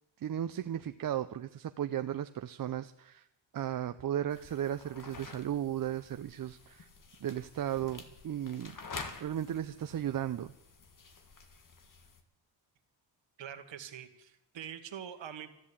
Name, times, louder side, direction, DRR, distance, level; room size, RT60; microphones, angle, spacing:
voice 1, 0.2-3.2 3.5-6.9 7.2-8.8 9.2-10.5, right 10 dB, 50° right, 10 dB, 0.6 m, -35 dB
sound 1, 4.3-12.2, left 4 dB, 45° left, 1.7 m, -49 dB
voice 2, 13.4-15.6, right 9 dB, 75° right, 7 dB, 1.7 m, -44 dB
14.0 x 10.5 x 8.5 m, 0.84 s
wide cardioid pair, 125°, 46 cm